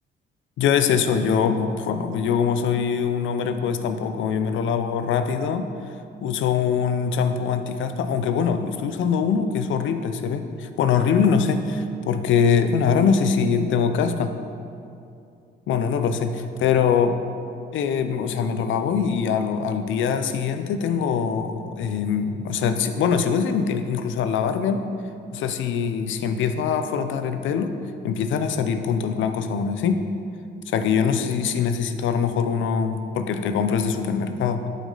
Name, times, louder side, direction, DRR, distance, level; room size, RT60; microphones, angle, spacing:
voice 1, 0.6-5.7 6.2-14.3 15.7-16.3 16.6-17.1 17.7-24.8 25.3-27.7 28.0-30.0 30.7-34.6, left 6 dB, 75° left, 8 dB, 0.6 m, -23 dB
11.5 x 5.1 x 3.9 m, 2.5 s
cardioid pair, 90°, 20 cm